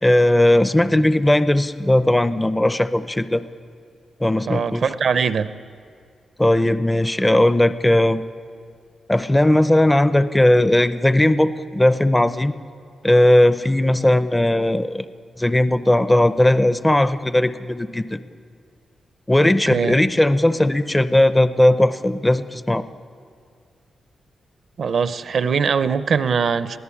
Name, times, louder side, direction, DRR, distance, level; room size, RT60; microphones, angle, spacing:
voice 1, 0.0-3.4 4.2-4.8 6.4-8.2 9.1-12.6 13.0-15.1 15.4-18.2 19.3-22.8, left 1 dB, 10° left, 12 dB, 0.5 m, -17 dB
voice 2, 4.5-5.5 19.4-20.0 24.8-26.8, right 6 dB, 55° right, 13 dB, 0.7 m, -21 dB
22.5 x 15.5 x 8.5 m, 2.3 s
wide cardioid pair, 150°, 0 cm